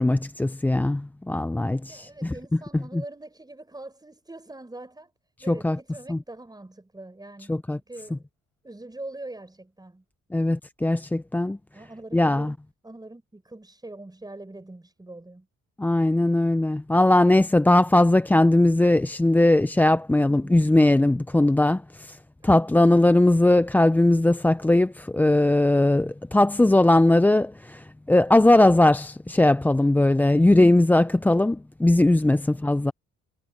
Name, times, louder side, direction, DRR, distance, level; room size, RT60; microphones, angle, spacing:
voice 1, 0.0-2.3 2.9-3.0 5.5-5.8 6.1-6.2 7.5-7.8 10.3-11.6 12.1-12.5 15.8-22.2 22.4-32.9, left 1 dB, 5° left, 0.4 m, -19 dB
voice 2, 1.9-5.1 5.4-8.2 8.6-10.0 11.4-12.6 12.8-15.5 20.3-20.6 32.3-32.7, right 2 dB, 15° right, 6.5 m, -43 dB
cardioid pair, 90°, 30 cm